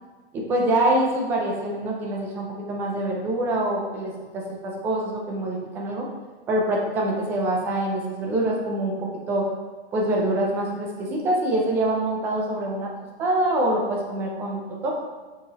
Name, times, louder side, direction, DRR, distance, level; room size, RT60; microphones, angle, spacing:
voice 1, 0.3-6.1 6.5-9.5 9.9-12.9 13.2-14.9, right 1 dB, 5° right, -2 dB, 0.3 m, -25 dB
8.3 x 4.7 x 2.9 m, 1.3 s
hypercardioid pair, 155°, 32 cm